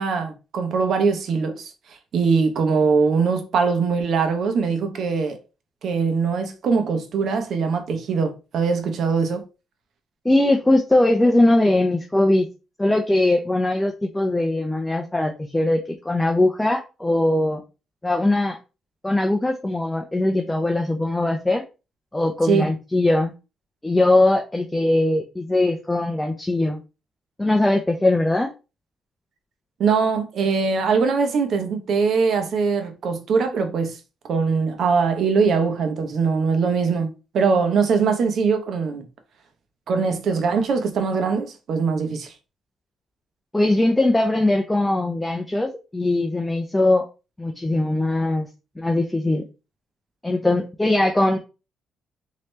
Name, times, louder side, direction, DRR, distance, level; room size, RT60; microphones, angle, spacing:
voice 1, 0.0-5.4 5.8-9.4 22.5-22.7 29.8-34.0 34.3-39.0 39.9-42.3, right 5 dB, 65° right, 0.8 m, -22 dB
voice 2, 10.2-12.5 12.8-17.6 18.0-18.6 19.0-21.6 22.1-23.3 23.8-26.8 27.4-28.5 43.5-47.1 47.4-48.5 48.8-49.4 50.2-51.4, left 2 dB, 10° left, 0.6 m, -20 dB
3.1 x 2.9 x 3.2 m
cardioid pair, 90°, 0 cm